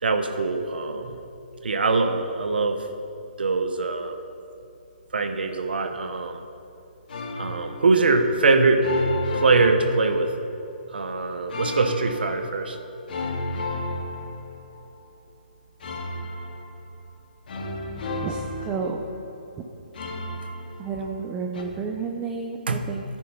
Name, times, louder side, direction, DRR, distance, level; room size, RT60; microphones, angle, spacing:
voice 1, 0.0-1.2 1.6-2.8 3.4-4.2 5.1-6.4 7.4-8.9 9.3-10.3 10.9-12.8 22.7-22.8, right 3 dB, 80° right, 7 dB, 1.4 m, -22 dB
sound 1, 7.1-7.9 8.8-10.6 11.5-12.5 13.1-14.8 15.8-17.0 17.5-19.3 19.9-21.2 21.5-21.6, left 2 dB, 65° left, 3.1 m, -33 dB
voice 2, 18.2-19.1 20.8-23.0, right 5 dB, 20° right, 2 dB, 0.9 m, -31 dB
13.5 x 9.7 x 5.7 m, 2.7 s
hypercardioid pair, 150°, 5 cm